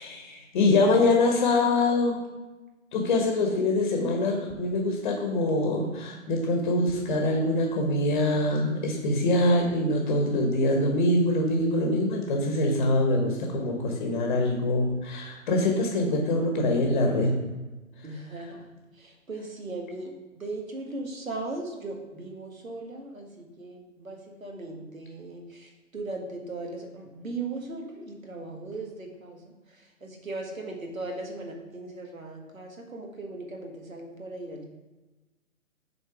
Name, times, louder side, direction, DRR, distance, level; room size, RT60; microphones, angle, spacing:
voice 1, 0.0-2.2 2.9-17.3, left 2 dB, 35° left, 1 dB, 1.3 m, -24 dB
voice 2, 18.0-34.6, right 2 dB, 85° right, 2 dB, 1.7 m, -38 dB
7.1 x 4.1 x 4.8 m, 1.1 s
figure-of-eight pair, 140°, 40 cm